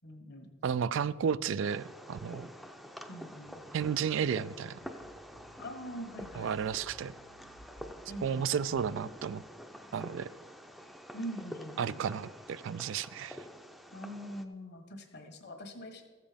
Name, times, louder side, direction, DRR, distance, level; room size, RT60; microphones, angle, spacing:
voice 1, 0.0-0.5 3.1-3.6 5.6-6.6 8.1-8.9 11.1-12.1 13.9-16.0, equal, 55° left, 5 dB, 1.5 m, -43 dB
voice 2, 0.6-2.5 3.7-4.8 6.4-7.1 8.2-9.4 9.9-10.3 11.8-13.4, right 7 dB, 70° right, 17 dB, 0.3 m, -32 dB
Fireworks, 1.6-14.5, equal, ahead, 0.6 m, -48 dB
sound 1, 3.4-8.8, equal, 75° left, 1.2 m, -58 dB
14.5 x 7.4 x 5.1 m, 1.4 s
head